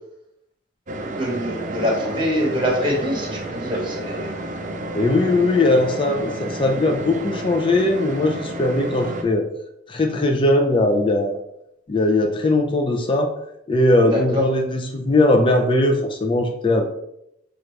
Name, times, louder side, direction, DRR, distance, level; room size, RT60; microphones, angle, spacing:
sound 1, 0.9-9.2, right 1 dB, 40° right, 0.5 m, -31 dB
voice 1, 1.2-4.3 14.0-14.4, equal, 25° right, -1 dB, 1.0 m, -24 dB
voice 2, 4.9-9.5 9.9-11.4 11.9-13.3 13.7-16.9, left 2 dB, 25° left, 2 dB, 0.4 m, -19 dB
5.8 x 2.5 x 3.2 m, 0.79 s
head